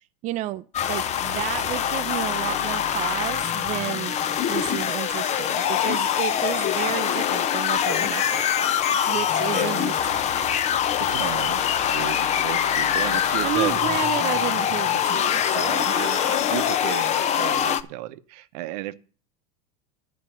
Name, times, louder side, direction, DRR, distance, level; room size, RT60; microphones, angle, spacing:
voice 1, 0.2-8.5 9.1-10.3 13.4-16.1, right 14 dB, 35° right, 0.4 m, -31 dB
sound 1, 0.7-17.8, left 9 dB, 35° left, 0.6 m, -24 dB
voice 2, 9.5-9.9 10.4-10.5 11.1-11.7 11.9-13.8 15.9-18.9, right 15 dB, 70° right, 0.8 m, -33 dB
10.5 x 5.1 x 7.6 m
supercardioid pair, 115°, 21 cm